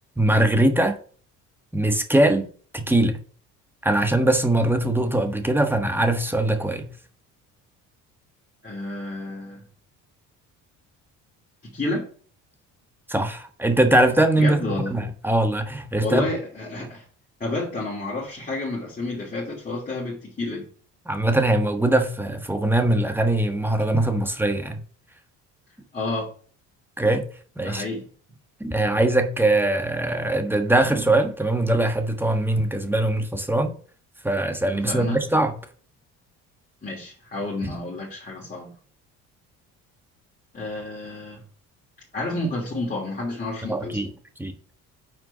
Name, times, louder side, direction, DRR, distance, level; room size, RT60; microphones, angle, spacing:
voice 1, 0.2-1.0 1.7-3.2 3.8-6.9 13.1-14.6 14.9-16.3 21.1-24.8 27.0-27.2 27.6-27.8 28.6-33.8 34.2-35.5 37.6-37.7 43.7-44.1 44.4-44.5, right 1 dB, 5° right, 1.4 m, -21 dB
voice 2, 8.6-9.6 11.6-12.0 14.4-14.9 16.0-17.0 17.4-20.7 25.9-26.3 27.6-28.0 34.7-35.2 36.8-38.7 40.5-41.4 42.1-44.1, left 2 dB, 25° left, 2.9 m, -30 dB
6.5 x 4.5 x 5.7 m
supercardioid pair, 80°, 34 cm